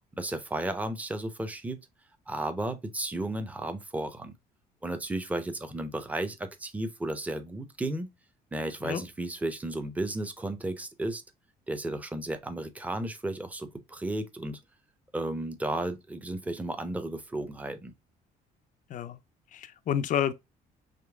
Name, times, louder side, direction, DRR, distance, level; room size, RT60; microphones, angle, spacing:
voice 1, 0.2-1.9 2.3-4.3 4.8-8.1 8.5-11.2 11.7-14.6 15.1-17.9, right 1 dB, 10° right, 0.7 m, -33 dB
voice 2, 19.5-20.3, left 9 dB, 50° left, 0.5 m, -29 dB
5.1 x 3.1 x 2.3 m
cardioid pair, 110°, 17 cm